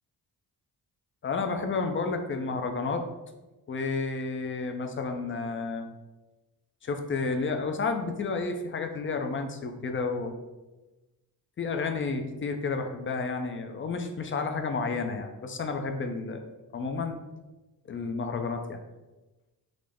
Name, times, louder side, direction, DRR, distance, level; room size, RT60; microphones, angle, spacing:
voice 1, 1.2-3.0 3.7-5.9 6.8-10.3 11.6-17.2 17.9-18.8, left 4 dB, 30° left, 6 dB, 0.5 m, -31 dB
3.8 x 2.0 x 3.4 m, 1.1 s
cardioid pair, 65°, 41 cm